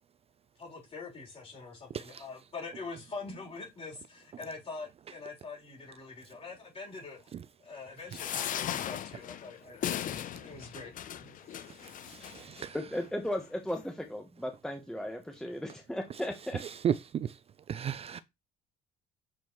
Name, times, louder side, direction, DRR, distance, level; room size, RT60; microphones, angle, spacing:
voice 1, 0.6-7.3 7.6-10.0 10.4-10.9 11.2-11.4 12.2-12.8, left 4 dB, 35° left, 3.8 m, -44 dB
sound 1, 8.1-12.7 13.3-13.4 13.7-13.8, left 10 dB, 55° left, 0.6 m, -37 dB
voice 2, 12.7-16.6, left 1 dB, 5° left, 1.0 m, -36 dB
voice 3, 17.7-18.2, right 9 dB, 35° right, 0.3 m, -29 dB
7.2 x 4.3 x 3.1 m
cardioid pair, 110°, 17 cm